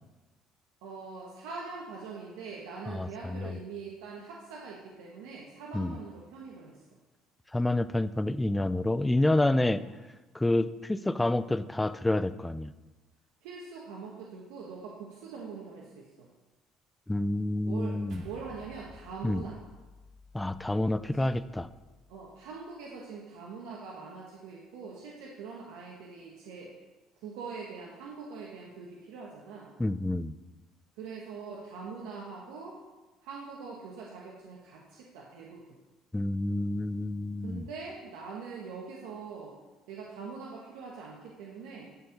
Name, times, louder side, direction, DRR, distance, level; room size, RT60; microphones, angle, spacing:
voice 1, 0.8-6.8 9.8-9.9 13.4-16.3 17.6-19.6 21.1-21.3 22.1-26.7 27.2-29.7 31.0-32.8 33.2-35.8 37.4-39.5 39.9-41.9, right 5 dB, 85° right, -3 dB, 1.2 m, -43 dB
voice 2, 2.9-3.6 5.7-6.0 7.5-9.8 10.3-12.7 17.1-18.2 19.2-19.4 20.3-21.7 29.8-30.3 36.1-37.7, left 1 dB, 10° left, 14 dB, 0.4 m, -28 dB
sound 1, 18.1-22.6, equal, 60° right, 1.1 m, -53 dB
11.0 x 4.5 x 5.3 m, 1.2 s
supercardioid pair, 90°, 0 cm